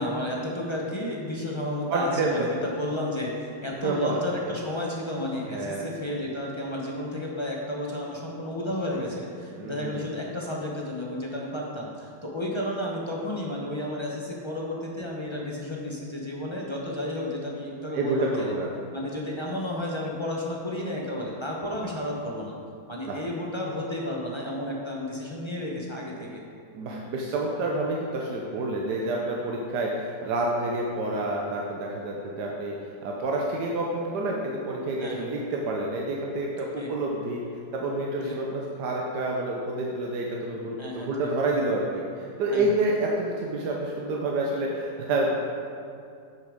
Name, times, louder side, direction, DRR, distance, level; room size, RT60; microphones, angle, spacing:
voice 1, 0.0-18.5 18.9-22.5 22.9-26.4 35.0-35.3 36.8-36.9 38.2-38.4 40.8-41.3 42.5-42.8, left 1 dB, 25° left, -3 dB, 0.7 m, -32 dB
voice 2, 1.9-2.5 3.8-4.2 4.5-4.6 5.5-5.9 9.0-9.1 9.5-10.1 17.9-18.7 23.1-23.2 26.7-32.8 33.0-37.4 37.7-45.4, right 2 dB, 75° right, -1 dB, 1.4 m, -28 dB
7.6 x 6.8 x 5.0 m, 2.5 s
omnidirectional pair, 1.8 m